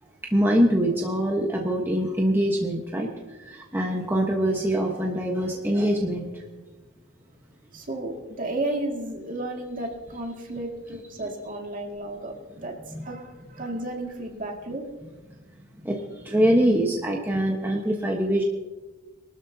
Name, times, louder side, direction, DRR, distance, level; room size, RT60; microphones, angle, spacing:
voice 1, 0.2-3.1 3.4-6.3 11.2-11.3 12.9-13.0 15.8-18.4, equal, 10° right, -1 dB, 1.2 m, -24 dB
voice 2, 7.7-14.8, right 1 dB, 40° right, 0 dB, 2.2 m, -33 dB
23.5 x 13.0 x 2.8 m, 1.2 s
head